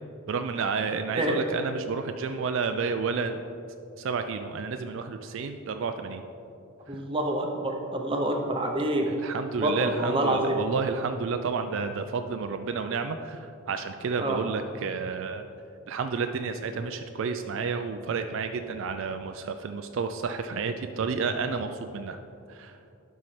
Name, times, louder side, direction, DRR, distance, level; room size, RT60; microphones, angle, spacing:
voice 1, 0.3-3.4 4.0-6.2 6.9-7.0 9.1-15.4 15.9-22.2 22.5-22.8, right 5 dB, 65° right, 7 dB, 0.3 m, -31 dB
voice 2, 6.9-9.1 9.6-10.6 14.2-14.4, right 1 dB, 25° right, 2 dB, 0.7 m, -27 dB
11.0 x 5.6 x 3.2 m, 2.6 s
head